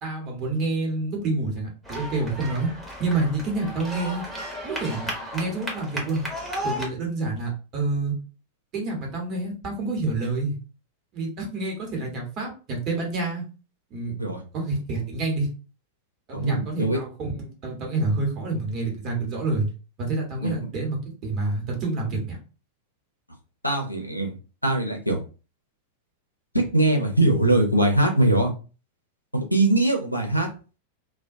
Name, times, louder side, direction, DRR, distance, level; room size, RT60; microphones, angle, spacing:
voice 1, 0.0-2.7 3.0-4.2 4.6-6.3 6.6-8.2 8.7-10.5 11.1-13.4 13.9-14.2 14.5-15.5 16.3-19.7 20.0-22.4, right 3 dB, 35° right, 0 dB, 1.0 m, -28 dB
sound 1, 1.8-6.8, equal, 5° right, 0.8 m, -34 dB
voice 2, 16.3-17.0 20.4-20.5 23.6-24.3 24.6-25.2 26.5-28.5 29.3-30.5, right 1 dB, 90° left, 1 dB, 0.6 m, -21 dB
2.2 x 2.1 x 2.6 m, 0.35 s
figure-of-eight pair, 90°, 0 cm